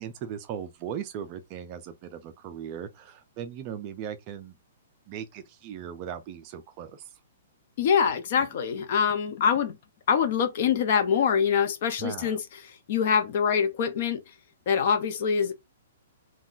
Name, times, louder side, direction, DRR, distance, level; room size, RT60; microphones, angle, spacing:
voice 1, 0.0-4.6 5.1-7.1 12.0-12.4, right 9 dB, 25° right, 0.3 m, -38 dB
voice 2, 7.8-9.8 10.1-14.2 14.7-15.5, left 7 dB, 45° left, 0.6 m, -24 dB
2.4 x 2.2 x 3.7 m
hypercardioid pair, 165°, 0 cm